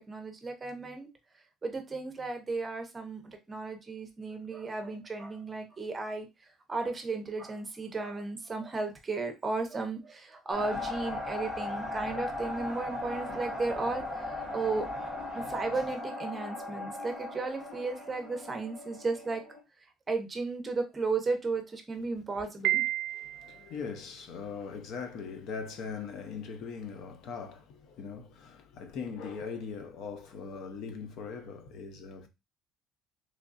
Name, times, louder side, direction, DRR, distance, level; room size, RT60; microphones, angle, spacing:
voice 1, 0.1-1.1 1.6-6.3 6.7-19.4 20.1-22.8, right 3 dB, 20° right, 0.7 m, -34 dB
sound 1, 10.5-19.6, left 2 dB, 15° left, 2.3 m, -38 dB
Piano, 22.6-23.7, right 15 dB, 75° right, 0.4 m, -30 dB
voice 2, 23.1-32.3, left 5 dB, 55° left, 0.6 m, -40 dB
3.6 x 3.2 x 2.5 m
cardioid pair, 145°, 0 cm